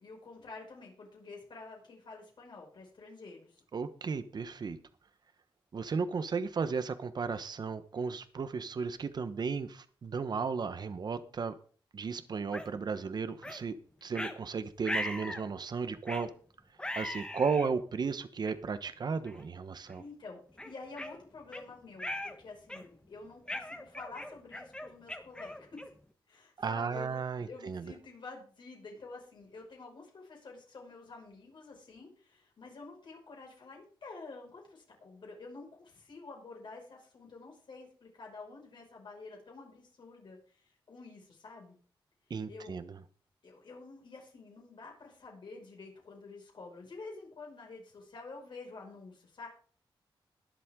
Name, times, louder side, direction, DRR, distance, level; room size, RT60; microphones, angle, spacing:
voice 1, 0.0-3.6 20.0-25.7 26.3-41.8 42.5-42.8 43.4-49.5, left 3 dB, 60° left, 0 dB, 5.7 m, -49 dB
voice 2, 3.7-4.8 5.7-11.5 11.9-13.7 14.0-16.3 17.0-20.0 26.6-27.9 42.3-43.0, right 5 dB, 50° right, 12 dB, 1.0 m, -34 dB
sound 1, 12.5-12.7 13.4-13.6 14.1-14.4 14.8-15.5 16.1-16.3 16.8-17.7 18.4-18.5 19.2-19.5 19.9-20.0 20.6-21.6 22.0-22.4 22.7-23.0 23.5-26.0, left 1 dB, 10° left, 1.2 m, -39 dB
22.0 x 7.7 x 3.7 m, 0.43 s
wide cardioid pair, 135°, 9 cm